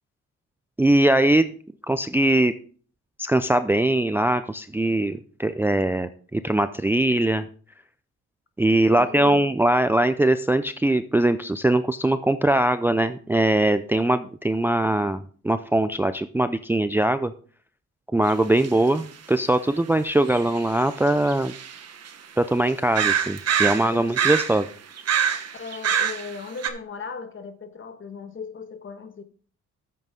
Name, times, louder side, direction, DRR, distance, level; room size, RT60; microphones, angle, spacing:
voice 1, 0.8-1.5 1.9-2.5 3.2-7.4 8.6-17.3 18.1-21.5 22.4-24.7, right 1 dB, 5° right, 0.4 m, -21 dB
voice 2, 8.9-9.4 23.9-24.2 25.5-29.2, left 5 dB, 40° left, 1.5 m, -37 dB
sound 1, 18.3-18.4 18.6-18.7 20.3-22.1 22.6-22.7 22.9-24.7 25.0-26.4 26.6-26.7, right 8 dB, 55° right, 1.3 m, -25 dB
9.3 x 8.0 x 3.7 m
cardioid pair, 90°, 30 cm